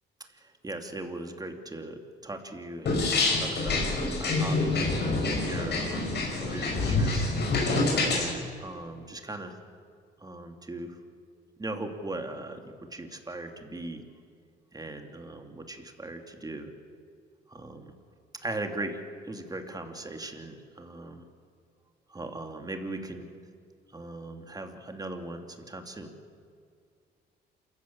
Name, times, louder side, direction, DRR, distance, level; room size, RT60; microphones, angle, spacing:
voice 1, 0.2-5.2 5.4-7.3 8.0-9.6 10.2-11.0 11.6-14.0 14.7-16.7 17.5-17.9 18.4-21.3 22.1-23.3 23.9-26.1, right 2 dB, 20° right, 5 dB, 2.7 m, -39 dB
sound 1, 2.9-8.3, left 3 dB, 60° left, 6.3 m, -27 dB
27.5 x 15.0 x 8.7 m, 2.2 s
cardioid pair, 90°, 20 cm